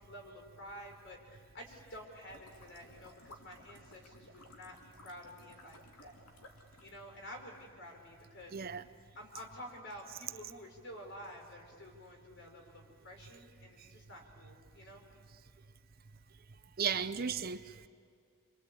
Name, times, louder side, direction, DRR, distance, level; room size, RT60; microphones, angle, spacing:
voice 1, 0.0-6.2 6.8-8.5 9.1-15.0, equal, 55° left, 2 dB, 4.8 m, -50 dB
sound 1, 2.2-7.0, left 2 dB, 85° left, 2.6 m, -58 dB
voice 2, 8.5-8.8 13.8-13.9 16.8-17.9, right 7 dB, 40° right, 11 dB, 0.7 m, -35 dB
28.0 x 23.5 x 8.5 m, 2.3 s
head